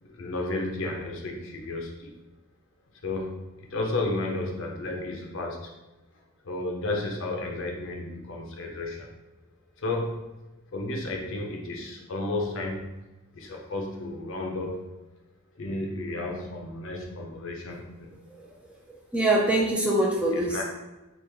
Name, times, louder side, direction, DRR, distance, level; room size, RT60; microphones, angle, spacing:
voice 1, 0.0-2.1 3.0-5.8 6.4-9.1 9.8-10.4 10.7-13.0 13.3-14.9 15.6-18.2 20.3-20.6, left 2 dB, 60° left, 1 dB, 0.5 m, -32 dB
voice 2, 19.1-20.6, right 1 dB, 5° right, -3 dB, 0.3 m, -23 dB
3.1 x 2.4 x 3.4 m, 1.1 s
head